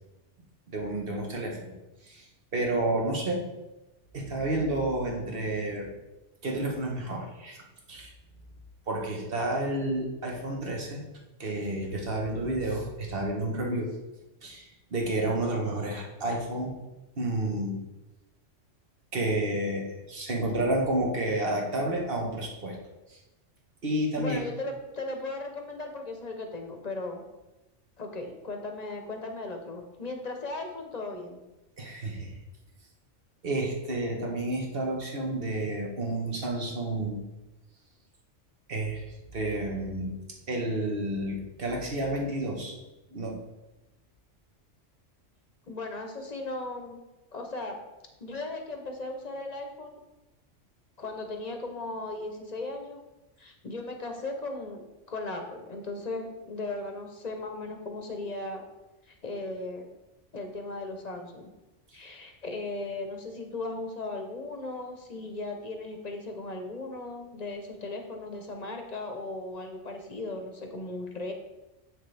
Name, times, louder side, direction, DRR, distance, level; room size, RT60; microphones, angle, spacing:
voice 1, 0.7-1.7 2.0-2.3 2.5-3.4 4.1-5.9 6.4-7.6 7.9-8.1 8.9-11.0 11.4-13.9 14.4-16.7 17.2-17.8 19.1-22.8 23.1-23.2 23.8-24.4 31.8-32.3 33.4-37.2 38.7-39.0 39.3-40.2 40.5-42.8 43.1-43.4, right 1 dB, 50° right, 0 dB, 1.5 m, -30 dB
voice 2, 24.1-27.3 28.0-31.4 45.7-47.0 47.3-47.8 48.2-50.0 51.0-53.0 53.4-54.8 55.1-58.6 59.0-59.9 60.3-61.5 61.9-71.3, left 2 dB, 35° left, 3 dB, 1.0 m, -37 dB
7.9 x 6.6 x 3.4 m, 1.0 s
omnidirectional pair, 1.3 m